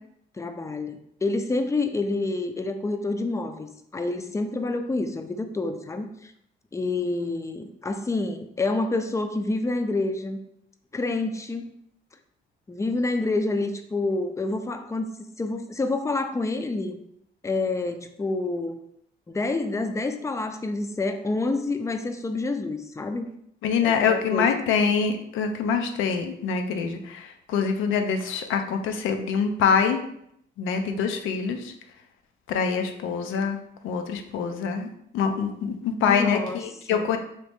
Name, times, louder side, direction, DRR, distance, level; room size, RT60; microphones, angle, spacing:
voice 1, 0.4-6.3 6.7-10.4 10.9-11.7 12.7-15.1 15.4-17.0 17.4-18.8 19.3-23.3 23.8-24.5 36.0-36.6 36.9-37.1, left 2 dB, 15° left, 7 dB, 0.4 m, -28 dB
voice 2, 23.6-30.0 30.6-31.7 32.5-33.6 33.8-34.9 35.1-37.2, left 6 dB, 85° left, 6 dB, 0.5 m, -25 dB
3.0 x 2.8 x 3.4 m, 0.73 s
cardioid pair, 90°, 20 cm